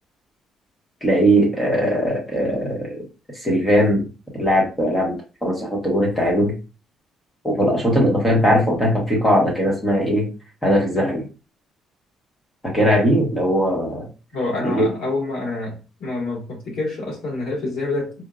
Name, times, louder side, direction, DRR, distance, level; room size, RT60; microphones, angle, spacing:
voice 1, 1.0-3.0 3.3-4.1 4.3-6.6 7.4-10.3 10.6-11.2 12.6-14.1 14.6-14.9, equal, 10° left, 1.2 m, -19 dB
voice 2, 14.3-18.1, left 2 dB, 65° left, 1.7 m, -27 dB
4.4 x 2.5 x 2.4 m
cardioid pair, 175°, 0 cm